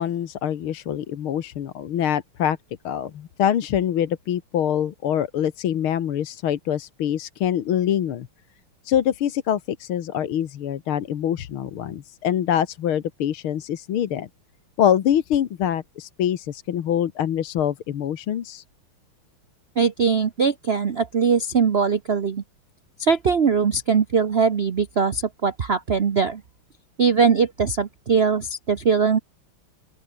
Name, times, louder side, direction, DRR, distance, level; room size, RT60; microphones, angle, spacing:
voice 1, 0.0-2.6 2.8-8.3 8.8-14.3 14.8-18.6, left 10 dB, 75° left, 2.1 m, -24 dB
voice 2, 19.8-22.4 23.0-26.4 27.0-29.2, right 5 dB, 50° right, 0.7 m, -21 dB
open air
omnidirectional pair, 2.4 m